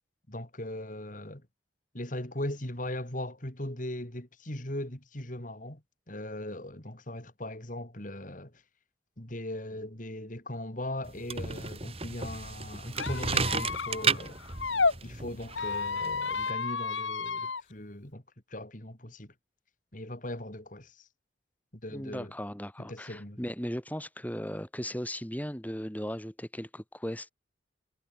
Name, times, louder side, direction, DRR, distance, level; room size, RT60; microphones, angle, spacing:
voice 1, 0.3-1.4 1.9-5.8 6.1-8.5 9.2-14.4 15.0-18.2 18.5-19.3 19.9-21.1 21.7-22.3 22.8-23.4, left 1 dB, 45° left, 3.4 m, -39 dB
sound 1, 11.0-16.5, right 5 dB, 30° right, 2.2 m, -33 dB
Squeak, 12.9-14.9 15.5-17.6, left 4 dB, 80° left, 2.0 m, -31 dB
voice 2, 21.9-27.3, equal, 10° left, 5.9 m, -37 dB
head